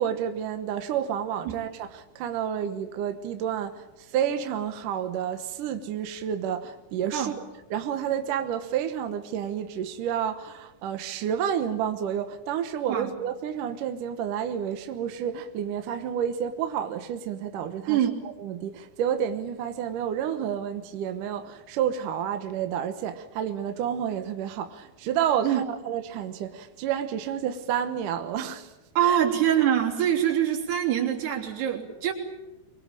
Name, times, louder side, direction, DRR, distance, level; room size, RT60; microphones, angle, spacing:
voice 1, 0.0-7.3 7.7-18.0 18.4-28.7 29.0-29.2, right 9 dB, 65° right, 2.4 m, -30 dB
voice 2, 29.0-32.1, right 10 dB, 80° right, 5.4 m, -24 dB
25.0 x 23.0 x 8.9 m
omnidirectional pair, 4.6 m